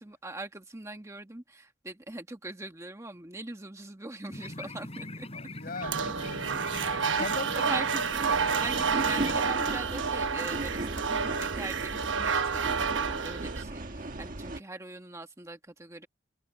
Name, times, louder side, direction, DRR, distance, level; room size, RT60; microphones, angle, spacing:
voice 1, 0.0-5.3 7.2-16.1, right 2 dB, 15° right, 1.3 m, -41 dB
sound 1, 4.3-9.4, left 2 dB, 35° left, 4.1 m, -42 dB
voice 2, 5.3-7.8, left 3 dB, 50° left, 5.6 m, -40 dB
sound 2, 5.8-13.6, right 6 dB, 80° right, 1.1 m, -29 dB
sound 3, 8.1-14.6, right 2 dB, 45° right, 1.5 m, -37 dB
head